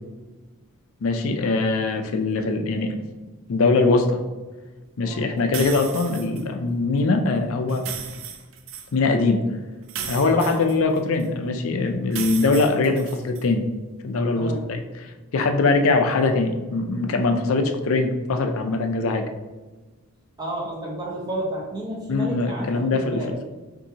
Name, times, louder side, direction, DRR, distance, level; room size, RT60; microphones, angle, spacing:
voice 1, 1.0-3.0 3.5-4.2 5.0-7.9 8.9-9.4 10.1-13.7 14.0-14.8 15.3-19.2 22.1-23.2, left 3 dB, 70° left, 5 dB, 0.4 m, -22 dB
voice 2, 5.0-5.4 10.4-10.7 14.4-14.7 20.4-23.4, right 1 dB, 20° right, -4 dB, 0.9 m, -31 dB
sound 1, 5.5-6.4 7.7-8.9 9.9-11.3 12.1-13.4, right 7 dB, 65° right, 0.4 m, -35 dB
5.4 x 2.6 x 2.8 m, 1.2 s
head